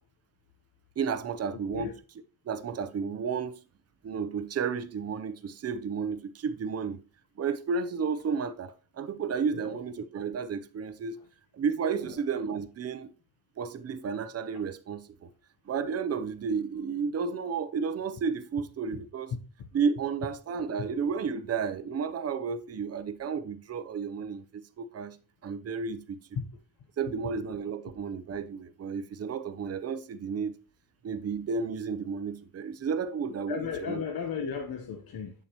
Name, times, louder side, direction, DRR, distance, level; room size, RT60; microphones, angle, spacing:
voice 1, 1.0-1.9 2.5-3.6 4.0-7.0 7.4-11.2 11.5-13.1 13.6-15.3 15.7-19.3 19.7-25.2 25.4-26.2 27.0-30.5 31.0-34.0, right 6 dB, 40° right, 0.6 m, -32 dB
voice 2, 33.5-35.3, left 6 dB, 60° left, 1.0 m, -34 dB
8.2 x 7.2 x 2.9 m
wide cardioid pair, 155°, 40 cm